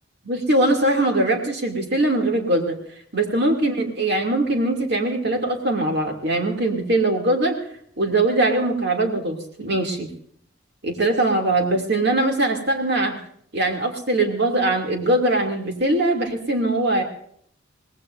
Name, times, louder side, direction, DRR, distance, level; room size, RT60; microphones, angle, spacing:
voice 1, 0.2-2.8 3.1-7.6 8.0-10.1 10.8-13.2 13.5-17.0, right 2 dB, 55° right, 2 dB, 2.7 m, -21 dB
24.0 x 18.5 x 2.6 m, 0.64 s
head